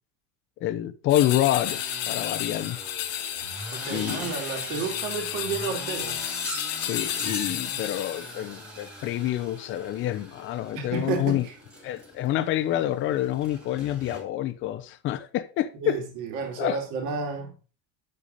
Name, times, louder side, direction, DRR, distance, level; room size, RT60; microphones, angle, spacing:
voice 1, 0.6-2.8 3.9-4.3 6.7-11.5 11.8-16.0 16.6-16.8, left 13 dB, 30° left, 0.7 m, -27 dB
sound 1, 1.1-8.4, left 12 dB, 55° left, 1.2 m, -32 dB
sound 2, 1.6-14.2, right 1 dB, 5° right, 2.3 m, -41 dB
voice 2, 3.8-6.2 10.7-11.4 15.8-17.5, right 5 dB, 45° right, 2.9 m, -31 dB
8.4 x 6.9 x 4.1 m
supercardioid pair, 155°, 40 cm